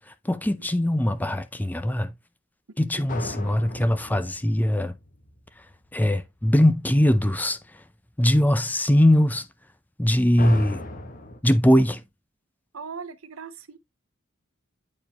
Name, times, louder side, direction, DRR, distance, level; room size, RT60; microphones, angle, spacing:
voice 1, 0.3-2.1 2.8-4.9 5.9-7.6 8.2-9.4 10.0-10.8 11.4-12.0, left 1 dB, 10° left, 0.5 m, -21 dB
sound 1, 3.1-6.1 10.4-11.4, left 2 dB, 40° left, 1.4 m, -37 dB
voice 2, 12.7-13.8, right 5 dB, 85° right, 0.8 m, -39 dB
8.5 x 4.6 x 2.9 m
head